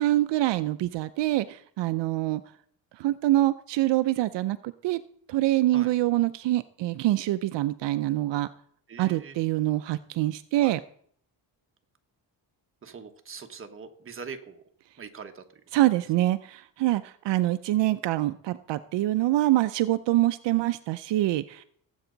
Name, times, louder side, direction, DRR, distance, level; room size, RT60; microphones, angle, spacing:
voice 1, 0.0-2.4 2.9-5.0 5.3-8.5 9.0-10.8 15.7-21.6, right 15 dB, 75° right, 12 dB, 0.6 m, -25 dB
voice 2, 8.9-9.4 10.6-10.8 12.8-14.6 15.0-15.4, right 5 dB, 30° right, 5 dB, 1.2 m, -42 dB
17.5 x 8.2 x 3.9 m, 0.62 s
cardioid pair, 135°, 44 cm